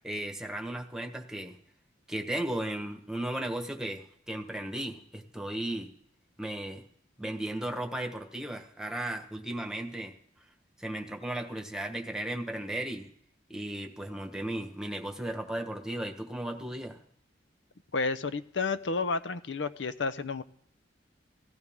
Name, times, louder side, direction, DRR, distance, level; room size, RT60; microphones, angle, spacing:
voice 1, 0.0-1.6 2.1-5.9 6.4-6.8 7.2-10.1 10.8-13.1 13.5-17.0, right 1 dB, 5° right, 4 dB, 1.3 m, -35 dB
voice 2, 17.9-20.4, left 4 dB, 75° left, 13 dB, 0.7 m, -31 dB
16.5 x 15.0 x 3.6 m, 0.65 s
head